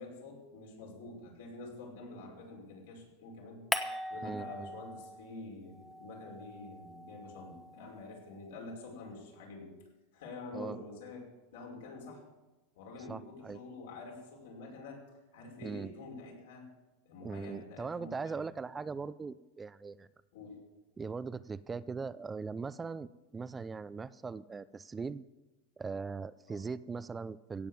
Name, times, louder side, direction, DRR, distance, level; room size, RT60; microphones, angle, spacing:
voice 1, 0.0-3.7 4.1-9.7 10.1-12.2 12.7-15.0 15.3-16.7 17.0-18.4 20.3-20.6 26.5-26.6, left 3 dB, 80° left, -1 dB, 5.1 m, -47 dB
sound 1, 3.7-5.4 5.7-8.1, left 1 dB, 5° left, 1.1 m, -41 dB
voice 2, 4.2-4.7 10.5-10.8 13.1-13.6 15.6-15.9 17.2-20.1 21.0-25.2 25.8-27.7, right 4 dB, 15° right, 16 dB, 0.4 m, -40 dB
16.5 x 7.4 x 7.0 m, 1.1 s
supercardioid pair, 140°, 0 cm